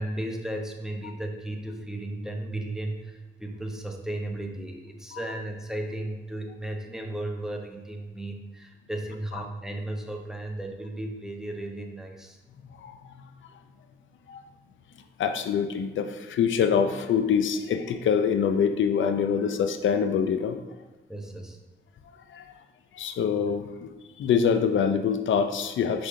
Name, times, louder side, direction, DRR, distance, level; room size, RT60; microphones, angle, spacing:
voice 1, 0.0-12.4 21.1-21.6, right 1 dB, 5° right, 2 dB, 0.9 m, -35 dB
voice 2, 15.2-20.6 22.3-22.5 22.9-23.9 24.2-26.1, left 7 dB, 85° left, 8 dB, 0.5 m, -25 dB
5.9 x 4.9 x 3.7 m, 1.1 s
cardioid pair, 80°, 19 cm